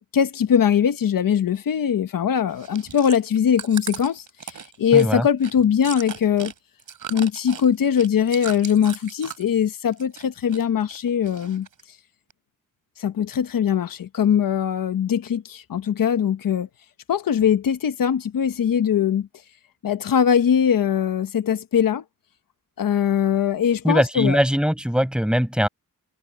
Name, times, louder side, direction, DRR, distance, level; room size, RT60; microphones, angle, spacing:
voice 1, 0.1-6.5 7.1-11.7 13.0-16.7 17.1-19.3 19.8-22.0 22.8-24.4, left 8 dB, 85° left, 1.1 m, -21 dB
Chewing mastication, 2.5-9.6 9.9-10.6 10.9-11.8 12.3-12.4, right 7 dB, 75° right, 3.6 m, -37 dB
voice 2, 4.9-5.3 23.8-25.7, equal, 5° right, 6.3 m, -21 dB
wide cardioid pair, 105°, 33 cm